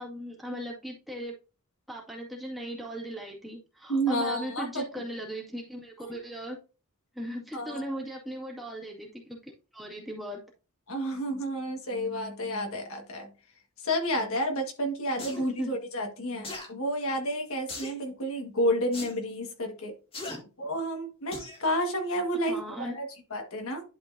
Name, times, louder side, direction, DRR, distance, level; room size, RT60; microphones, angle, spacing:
voice 1, 0.0-1.3 1.9-6.6 7.1-9.4 9.7-10.4 15.6-15.7 20.3-20.4 22.5-23.0, equal, ahead, -3 dB, 2.0 m, -38 dB
voice 2, 3.9-4.8 7.5-7.8 10.9-13.3 13.8-19.9 20.6-23.0 23.3-23.8, equal, 65° left, 3 dB, 1.6 m, -30 dB
sound 1, 15.2-15.4 16.4-16.7 17.7-18.0 18.9-19.1 20.1-20.4 21.3-21.6 22.1-22.2, left 2 dB, 25° left, 1.9 m, -38 dB
11.5 x 4.4 x 2.7 m, 0.34 s
head